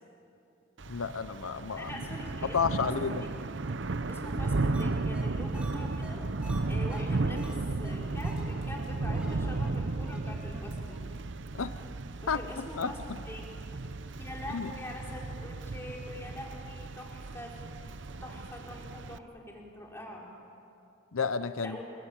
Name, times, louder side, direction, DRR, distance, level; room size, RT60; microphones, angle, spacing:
Thunder / Rain, 0.8-19.2, right 3 dB, 60° right, 0.7 m, -34 dB
voice 1, 0.9-1.9 2.5-3.2 11.5-11.8 12.3-12.4 12.8-12.9 14.5-14.7 21.1-21.8, left 5 dB, 90° left, 12 dB, 0.8 m, -31 dB
voice 2, 1.8-3.3 4.1-6.2 6.7-11.0 12.2-13.0 13.2-13.4 14.2-17.6 18.2-20.3 21.6-21.8, left 1 dB, 10° left, -2 dB, 4.2 m, -43 dB
sound 1, 4.7-4.8 5.1-5.2 5.5-7.6 7.8-8.0 8.2-8.4 8.8-8.9 9.1-9.3 9.6-9.7 10.0-10.2 10.5-10.6 10.9-11.0, right 1 dB, 5° right, 2.6 m, -46 dB
27.5 x 22.0 x 9.1 m, 2.7 s
head